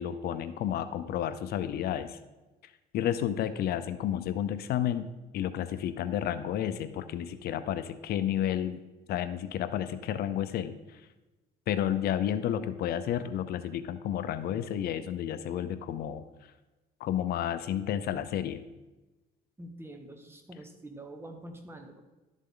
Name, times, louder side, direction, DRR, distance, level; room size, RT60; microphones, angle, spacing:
voice 1, 0.0-2.2 2.9-5.1 5.3-8.8 9.1-11.1 11.7-16.2 17.0-18.6, left 10 dB, 70° left, 12 dB, 0.6 m, -31 dB
voice 2, 19.6-22.0, right 1 dB, 15° right, 4 dB, 1.5 m, -46 dB
12.0 x 7.3 x 3.8 m, 1.1 s
cardioid pair, 110°, 17 cm